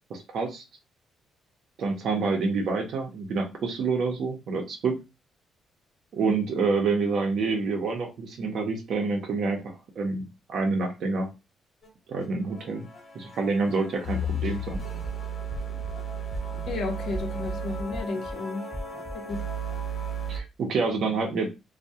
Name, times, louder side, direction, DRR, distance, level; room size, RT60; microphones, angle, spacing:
voice 1, 0.1-0.6 1.8-5.0 6.1-11.3 12.1-12.9 13.1-14.8 20.3-21.5, right 4 dB, 65° right, 0.6 m, -27 dB
sound 1, 11.8-11.9 12.2-12.3 12.5-20.4, right 2 dB, 40° left, 1.0 m, -34 dB
sound 2, 14.2-14.3 14.7-15.1 15.5-15.9 16.3-16.7 17.1-17.5 17.9-18.3 18.7-19.1, equal, 15° right, 0.6 m, -37 dB
voice 2, 16.7-18.7 19.1-19.5, left 3 dB, 70° left, 0.6 m, -33 dB
2.2 x 2.1 x 2.7 m
cardioid pair, 90°, 0 cm